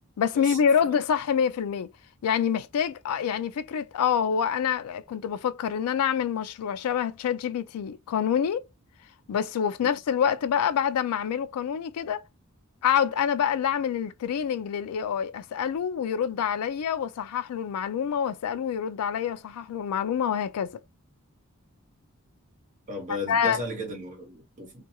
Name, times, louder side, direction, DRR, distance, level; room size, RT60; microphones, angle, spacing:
voice 1, 0.2-1.9 2.2-8.7 9.3-12.2 12.8-20.8 23.1-23.6, left 8 dB, 80° left, 0.3 m, -26 dB
voice 2, 22.9-24.8, left 1 dB, 35° right, 1.1 m, -35 dB
2.4 x 2.3 x 2.8 m
head